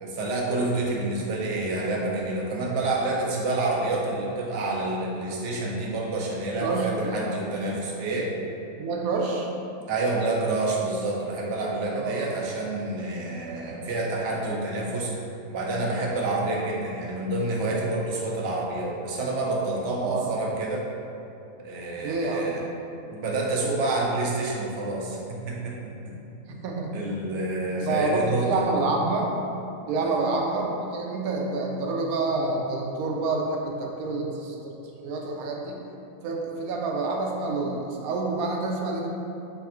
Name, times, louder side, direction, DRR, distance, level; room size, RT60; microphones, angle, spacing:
voice 1, 0.0-8.3 9.9-15.1 15.5-20.8 21.6-22.6 23.1-26.1 26.9-28.7 30.0-30.2, right 2 dB, 65° right, -3 dB, 0.8 m, -28 dB
voice 2, 6.6-7.1 8.8-9.5 12.0-12.2 20.0-20.3 22.0-22.5 26.1-27.0 27.7-29.3 29.9-34.8 35.0-35.8 36.2-39.1, right 3 dB, 90° right, 0 dB, 1.0 m, -28 dB
3.3 x 2.4 x 4.2 m, 2.8 s
omnidirectional pair, 1.5 m